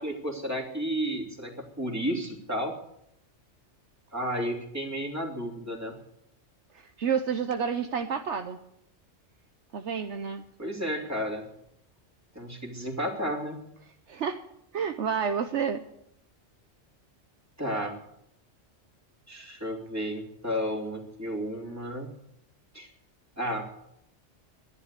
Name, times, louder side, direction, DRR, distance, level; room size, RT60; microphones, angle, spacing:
voice 1, 0.0-2.8 4.1-5.9 10.6-11.4 12.3-13.6 17.6-18.0 19.3-22.1 22.7-22.9 23.4-23.7, equal, 10° right, 0 dB, 2.9 m, -32 dB
voice 2, 7.0-8.6 9.7-10.4 14.1-14.4 14.7-15.8, right 7 dB, 65° right, 7 dB, 1.1 m, -29 dB
13.0 x 10.5 x 8.2 m, 0.76 s
omnidirectional pair, 1.3 m